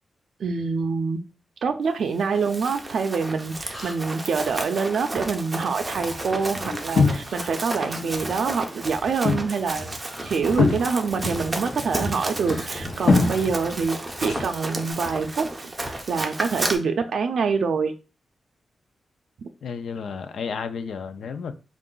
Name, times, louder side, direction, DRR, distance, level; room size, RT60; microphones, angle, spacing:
voice 1, 0.4-1.2 1.6-17.9, right 5 dB, 75° right, 0.4 m, -26 dB
Run, 2.2-16.7, right 1 dB, 15° right, 0.6 m, -33 dB
sound 1, 3.7-4.3 5.7-5.9 7.2-7.5 10.0-10.3 12.4-12.7 14.4-14.7 16.5-16.7, equal, 20° left, 1.5 m, -43 dB
sound 2, 5.9-7.6 7.9-8.6 8.9-14.9, left 4 dB, 65° left, 0.9 m, -26 dB
voice 2, 19.6-21.6, left 6 dB, 85° left, 0.4 m, -32 dB
4.5 x 2.4 x 3.8 m
wide cardioid pair, 160°, 0 cm